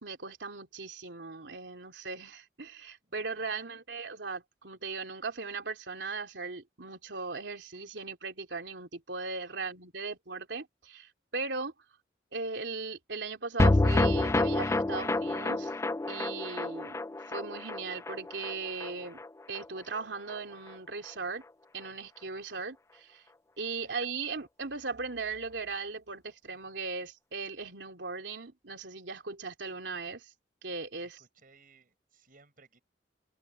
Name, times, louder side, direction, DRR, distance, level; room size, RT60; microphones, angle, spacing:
voice 1, 0.0-11.7 12.3-15.7 16.1-17.0 17.3-19.2 19.5-21.4 21.7-23.2 23.6-30.3 30.6-31.2, right 4 dB, 85° right, 3.2 m, -38 dB
voice 2, 3.0-3.4 9.5-9.7 23.8-23.9 31.0-32.8, right 4 dB, 50° right, 6.2 m, -62 dB
sound 1, 13.6-20.0 20.3-20.4 20.7-20.8, left 2 dB, 15° left, 0.3 m, -28 dB
head